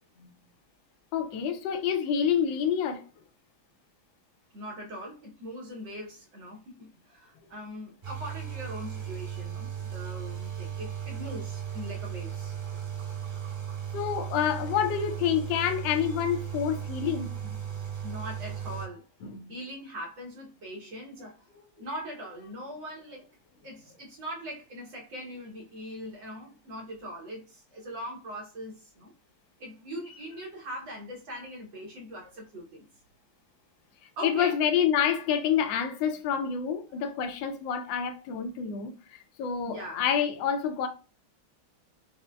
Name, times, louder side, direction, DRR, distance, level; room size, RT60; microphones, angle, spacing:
voice 1, 1.1-3.1 13.9-17.5 19.2-19.5 34.2-40.9, left 8 dB, 75° left, 1.3 m, -28 dB
voice 2, 4.5-12.6 18.0-19.1 19.5-21.5 21.8-23.3 23.6-29.1 29.6-32.9 34.2-34.6 36.9-37.0 39.6-40.0, equal, 70° right, 1.5 m, -41 dB
sound 1, 8.0-18.9, right 9 dB, 45° right, 1.9 m, -36 dB
6.3 x 2.1 x 2.2 m
omnidirectional pair, 2.2 m